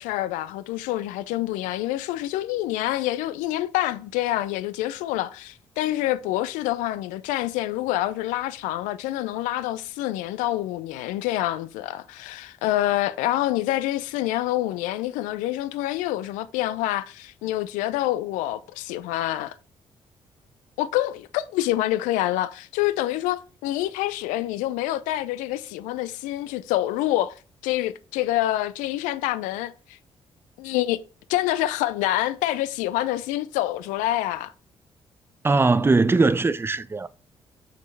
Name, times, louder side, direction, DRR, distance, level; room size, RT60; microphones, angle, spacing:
voice 1, 0.0-19.6 20.8-27.3 27.6-29.7 30.6-31.0 31.3-34.5, left 15 dB, 75° left, 0.4 m, -26 dB
voice 2, 35.4-37.1, right 3 dB, 15° right, 0.5 m, -20 dB
6.5 x 5.0 x 3.2 m
hypercardioid pair, 45°, 13 cm